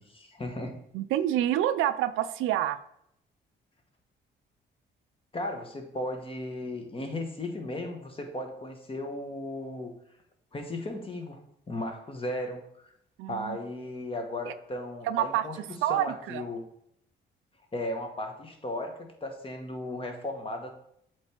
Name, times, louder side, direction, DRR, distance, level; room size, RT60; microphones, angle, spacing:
voice 1, 0.0-0.8 5.3-9.9 10.5-11.4 11.7-12.9 13.3-16.7 17.7-20.7, left 1 dB, 25° left, 4 dB, 1.3 m, -36 dB
voice 2, 0.9-2.8 13.2-13.6 14.5-14.6 15.1-15.4 15.8-16.4, right 12 dB, 90° right, 12 dB, 0.4 m, -27 dB
7.7 x 3.4 x 4.5 m, 0.72 s
cardioid pair, 90°, 20 cm